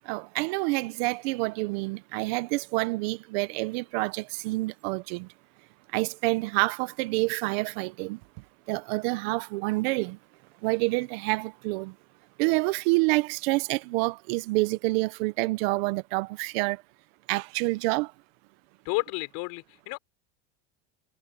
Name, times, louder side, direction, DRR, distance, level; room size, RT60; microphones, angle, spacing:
voice 1, 0.0-5.3 5.9-8.2 8.7-10.2 10.6-11.9 12.4-16.8 17.3-18.1, right 24 dB, 70° right, 1.1 m, -28 dB
voice 2, 18.8-20.0, left 26 dB, 65° left, 4.9 m, -31 dB
supercardioid pair, 125°, 31 cm